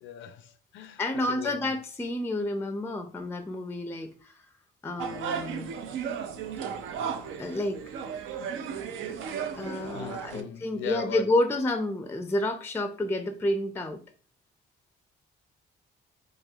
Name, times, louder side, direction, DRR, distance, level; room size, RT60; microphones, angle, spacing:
voice 1, 0.0-1.0 1.4-1.6 5.0-5.3 9.9-11.2, left 9 dB, 75° left, 0.4 m, -39 dB
voice 2, 1.0-4.5 4.8-5.7 7.4-7.8 9.6-14.0, left 1 dB, 10° left, 0.4 m, -30 dB
sound 1, 5.0-10.4, right 7 dB, 85° right, 0.5 m, -35 dB
4.2 x 2.9 x 2.3 m
cardioid pair, 90°, 20 cm